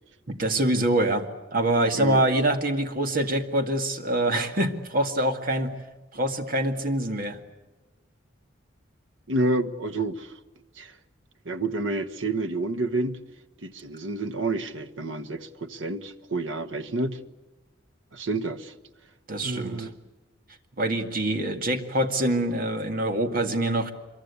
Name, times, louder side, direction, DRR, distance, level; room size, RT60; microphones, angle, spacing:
voice 1, 0.3-5.7 6.1-7.4 19.3-19.9 20.8-23.9, right 1 dB, 50° right, 6 dB, 2.1 m, -25 dB
voice 2, 9.3-10.3 10.8-10.9 11.4-13.2 13.6-17.2 18.1-18.7 19.4-19.9, right 2 dB, 85° right, 10 dB, 1.3 m, -29 dB
25.5 x 23.0 x 8.4 m, 1.2 s
head